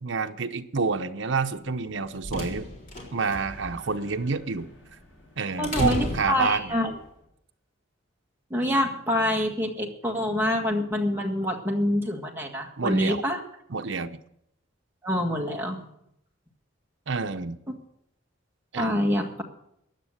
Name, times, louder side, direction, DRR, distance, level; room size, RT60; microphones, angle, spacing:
voice 1, 0.0-2.7 3.1-4.7 5.4-6.7 12.8-13.2 13.7-14.2 17.1-17.6 18.7-19.1, right 4 dB, 70° right, 8 dB, 0.8 m, -28 dB
sound 1, 1.7-7.0, left 1 dB, 40° left, 4.0 m, -35 dB
sound 2, 3.3-6.2, equal, 75° left, 7.5 m, -49 dB
voice 2, 5.6-6.9 8.5-13.4 15.0-15.8 18.8-19.4, left 1 dB, 10° right, 0 dB, 1.8 m, -26 dB
16.0 x 10.5 x 6.5 m, 0.76 s
head